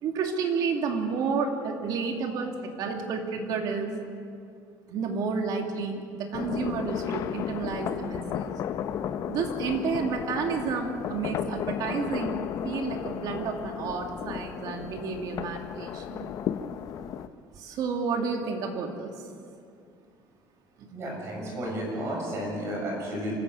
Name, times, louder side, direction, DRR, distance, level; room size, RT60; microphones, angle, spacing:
voice 1, 0.0-4.0 4.9-8.5 9.3-16.3 17.5-19.2 20.8-20.9, right 5 dB, 50° right, 3 dB, 2.6 m, -31 dB
sound 1, 6.3-17.3, left 9 dB, 45° left, 0.7 m, -34 dB
voice 2, 20.9-23.3, equal, 35° right, -2 dB, 7.4 m, -32 dB
26.0 x 15.0 x 8.2 m, 2.4 s
cardioid pair, 175°, 8 cm